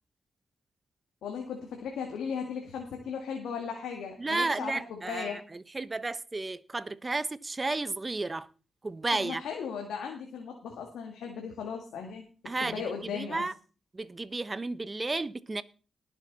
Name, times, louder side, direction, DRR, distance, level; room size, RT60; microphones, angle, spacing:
voice 1, 1.2-5.4 9.1-12.3 12.6-13.4, left 6 dB, 85° left, 2.0 m, -37 dB
voice 2, 4.2-8.5 8.8-9.4 12.4-13.5 13.9-15.6, right 3 dB, 30° right, 1.0 m, -33 dB
19.5 x 7.1 x 4.1 m
supercardioid pair, 50°, 0 cm